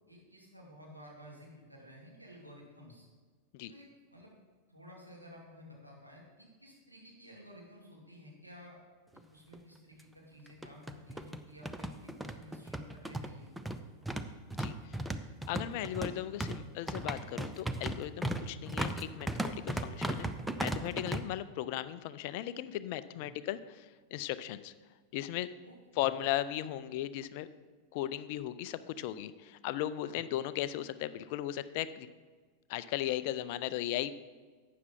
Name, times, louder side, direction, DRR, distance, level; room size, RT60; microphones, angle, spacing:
voice 1, 0.1-3.1 3.7-4.3 4.7-8.8 9.3-13.6 23.1-23.4 25.6-26.0 30.0-30.2, equal, 90° right, -4 dB, 2.6 m, -54 dB
sound 1, 9.2-9.3 9.5-9.6 10.5-21.2, right 1 dB, 5° right, 0.6 m, -37 dB
voice 2, 14.5-15.0 15.5-20.3 20.6-24.7 25.1-25.5 26.0-27.5 27.9-32.1 32.7-34.1, left 13 dB, 45° left, 14 dB, 0.4 m, -37 dB
12.0 x 8.5 x 3.7 m, 1.5 s
figure-of-eight pair, 90°, 0 cm